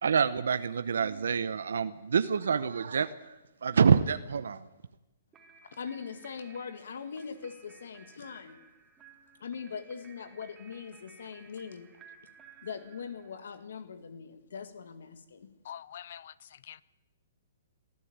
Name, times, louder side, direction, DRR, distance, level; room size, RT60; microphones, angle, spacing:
voice 1, 0.0-3.4 3.6-4.7, right 6 dB, 85° right, 0.9 m, -27 dB
sound 1, 5.3-13.6, right 6 dB, 15° right, 3.1 m, -57 dB
voice 2, 5.6-8.6 9.4-11.9 12.6-15.5, left 6 dB, 80° left, 2.0 m, -41 dB
voice 3, 15.6-16.8, left 10 dB, 60° left, 0.8 m, -45 dB
22.5 x 13.5 x 8.9 m
hypercardioid pair, 155°, 0 cm